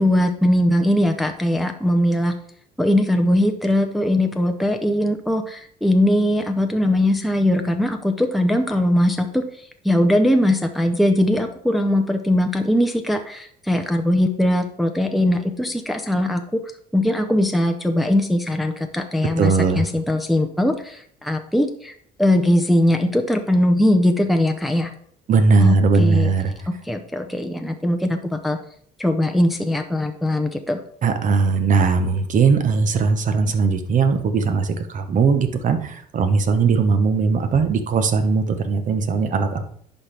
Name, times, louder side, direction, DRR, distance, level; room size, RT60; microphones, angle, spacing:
voice 1, 0.0-2.3 2.8-9.4 9.8-16.4 16.9-24.9 25.6-26.3 26.8-28.6 29.0-30.8, left 1 dB, ahead, 5 dB, 0.6 m, -20 dB
voice 2, 19.4-19.8 25.3-26.5 31.0-39.6, right 4 dB, 50° right, 8 dB, 1.0 m, -19 dB
11.0 x 4.3 x 3.4 m, 0.63 s
cardioid pair, 110°, 17 cm